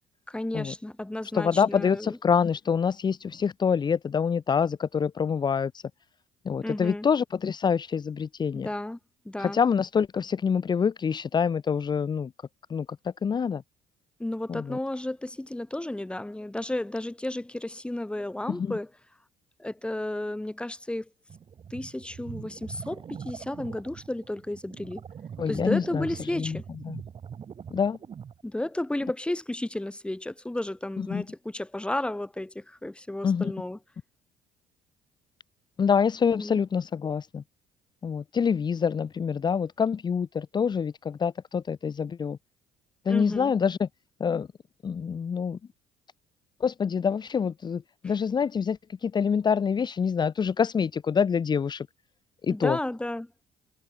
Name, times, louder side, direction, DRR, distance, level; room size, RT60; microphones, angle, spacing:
voice 1, 0.3-2.2 6.6-7.1 8.5-9.0 9.2-9.6 14.2-18.9 19.6-21.1 21.7-25.0 25.5-26.6 28.4-33.8 36.4-36.6 43.1-43.5 52.5-53.3, left 1 dB, 10° left, 2.8 m, -33 dB
voice 2, 1.3-5.8 6.4-8.7 9.4-12.3 12.7-12.9 13.2-13.6 14.5-14.8 18.5-18.7 25.4-26.6 26.8-27.0 27.7-28.0 31.0-31.2 33.2-33.5 35.8-37.4 38.0-42.4 43.0-43.9 44.2-44.5 44.8-45.6 46.6-51.9 52.4-52.8, left 6 dB, 35° left, 1.2 m, -26 dB
sound 1, 21.3-28.4, right 7 dB, 45° right, 3.6 m, -42 dB
supercardioid pair, 70°, 12 cm